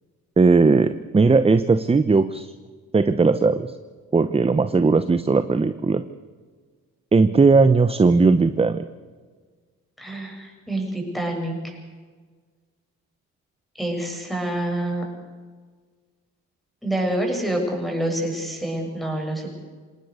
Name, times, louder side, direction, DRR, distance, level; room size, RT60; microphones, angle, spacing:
voice 1, 0.4-2.5 2.9-3.7 4.1-6.0 7.1-8.9, right 4 dB, 20° right, 12 dB, 0.8 m, -18 dB
voice 2, 10.0-11.8 13.8-15.0 16.8-19.6, right 1 dB, ahead, 1 dB, 7.7 m, -27 dB
26.5 x 19.0 x 6.7 m, 1.5 s
cardioid pair, 90°, 30 cm